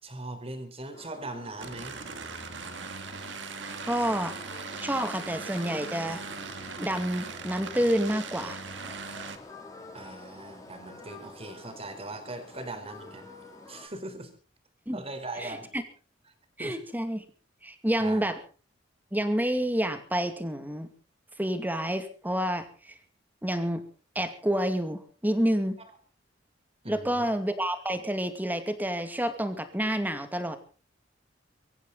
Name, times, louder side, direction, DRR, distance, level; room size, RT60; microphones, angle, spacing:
voice 1, 0.0-2.0 9.9-13.3 13.7-14.3 14.9-15.7 16.6-16.8 18.0-18.3 25.8-25.9 26.8-27.3, right 2 dB, 30° right, 8 dB, 4.1 m, -40 dB
sound 1, 0.9-13.9, left 3 dB, 20° left, 5.8 m, -48 dB
sound 2, 1.6-9.4, right 5 dB, 70° right, 2.4 m, -40 dB
voice 2, 3.9-4.4 4.8-6.2 6.8-8.9 14.9-15.0 15.4-15.8 16.6-17.2 17.6-18.4 19.1-20.9 21.4-23.0 23.4-23.8 24.1-25.8 26.9-30.6, equal, 10° right, 8 dB, 2.4 m, -29 dB
23.5 x 15.0 x 4.0 m, 0.40 s
head